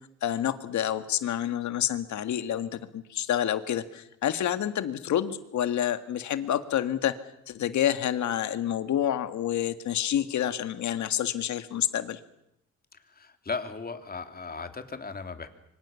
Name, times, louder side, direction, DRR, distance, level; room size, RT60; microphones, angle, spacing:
voice 1, 0.2-7.1 7.5-12.2, left 10 dB, 70° left, 11 dB, 1.8 m, -28 dB
voice 2, 13.1-15.5, left 4 dB, 30° left, 7 dB, 3.0 m, -36 dB
26.0 x 24.5 x 7.1 m, 0.80 s
cardioid pair, 90°, 30 cm